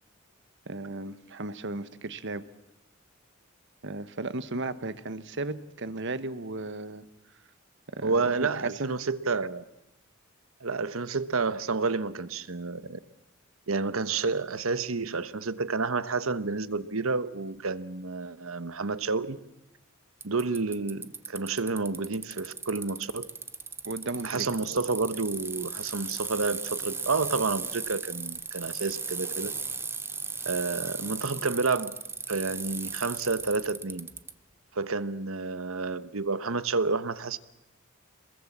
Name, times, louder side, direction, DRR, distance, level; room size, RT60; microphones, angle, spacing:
voice 1, 0.7-2.4 3.8-7.0 7.9-8.9 23.8-24.4, right 2 dB, 60° right, 13 dB, 1.3 m, -35 dB
voice 2, 8.0-9.6 10.6-13.0 13.7-19.4 20.2-23.3 24.2-29.5 30.5-31.9 32.3-34.1 34.7-37.4, right 4 dB, 85° right, 14 dB, 1.2 m, -30 dB
Bicycle, 20.2-34.3, right 4 dB, 10° right, 0.9 m, -36 dB
27.0 x 21.5 x 7.4 m, 0.89 s
head